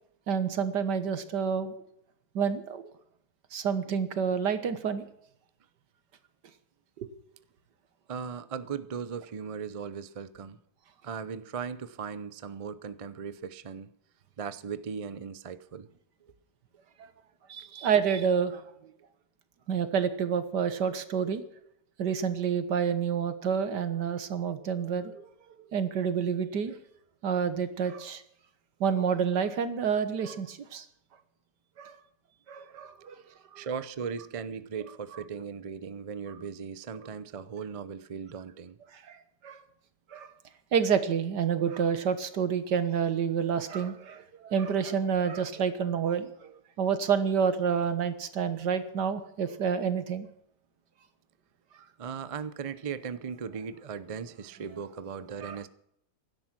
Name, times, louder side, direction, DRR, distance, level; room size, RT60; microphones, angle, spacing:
voice 1, 0.3-1.7 2.4-2.8 3.5-5.0 7.0-7.1 17.5-18.6 19.7-21.4 22.0-25.3 25.7-26.8 27.2-28.2 28.8-30.9 31.8-32.0 32.5-33.2 33.5-33.7 38.9-39.2 39.4-39.6 40.1-40.3 40.7-46.3 46.8-50.3 55.4-55.6, right 7 dB, 80° right, 11 dB, 1.9 m, -28 dB
voice 2, 8.1-10.6 11.0-13.9 14.4-15.9 33.6-38.8 52.0-55.7, right 6 dB, 45° right, 14 dB, 0.4 m, -38 dB
16.5 x 12.0 x 6.0 m, 0.75 s
omnidirectional pair, 1.8 m